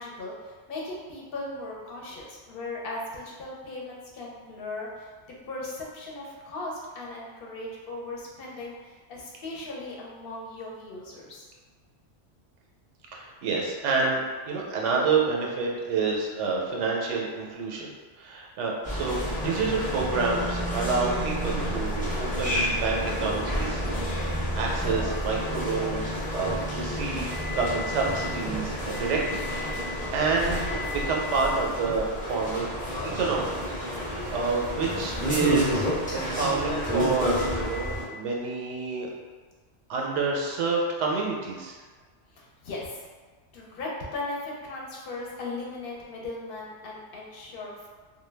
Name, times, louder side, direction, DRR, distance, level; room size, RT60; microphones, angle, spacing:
voice 1, 0.0-5.1 5.5-11.5 42.3-43.1 43.5-47.9, left 2 dB, 60° left, -4 dB, 0.7 m, -38 dB
voice 2, 13.1-14.2 14.5-17.9 18.2-24.0 24.3-32.7 33.1-39.1 39.9-41.7, right 4 dB, 85° right, -1 dB, 0.9 m, -28 dB
sound 1, 18.8-38.0, equal, 10° left, 0.4 m, -30 dB
2.2 x 2.1 x 3.2 m, 1.4 s
omnidirectional pair, 1.2 m